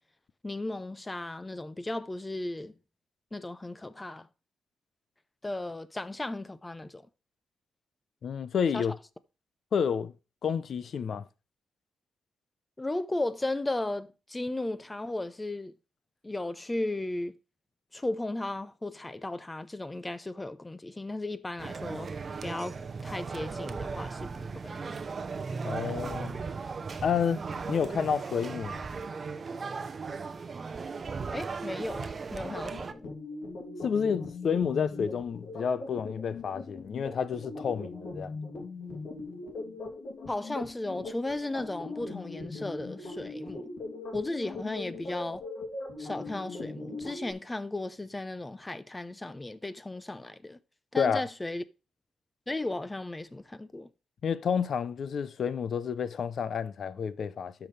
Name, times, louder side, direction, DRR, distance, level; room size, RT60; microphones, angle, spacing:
voice 1, 0.4-2.7 3.3-4.3 5.4-7.0 8.7-8.9 12.8-15.7 16.2-17.4 17.9-22.1 22.4-25.0 31.3-33.1 40.3-43.7 44.1-45.4 46.0-50.6 50.9-51.6 52.5-53.9, left 2 dB, 15° left, 0.6 m, -35 dB
voice 2, 8.2-8.9 9.7-10.1 10.4-11.3 25.6-26.4 27.0-28.8 33.8-38.4 51.0-51.2 54.2-57.5, left 7 dB, 55° left, 0.6 m, -30 dB
sound 1, 21.6-32.9, right 4 dB, 35° right, 0.7 m, -37 dB
sound 2, 32.4-47.3, left 3 dB, 75° left, 2.8 m, -40 dB
12.0 x 6.0 x 3.3 m
cardioid pair, 130°, 0 cm